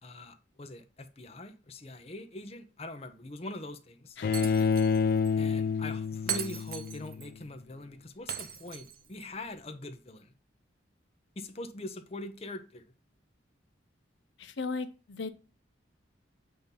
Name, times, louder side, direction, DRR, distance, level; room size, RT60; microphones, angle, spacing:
voice 1, 0.0-4.2 5.4-10.3 11.4-12.8, left 2 dB, 30° left, 0.7 m, -43 dB
voice 2, 4.2-4.5 14.4-15.3, left 3 dB, 70° left, 0.7 m, -37 dB
Bowed string instrument, 4.2-7.3, left 5 dB, 50° left, 0.3 m, -28 dB
Shatter, 4.3-5.0 5.2-5.3 6.3-7.3 8.3-9.3, right 9 dB, 50° right, 0.7 m, -38 dB
7.7 x 2.7 x 5.2 m
head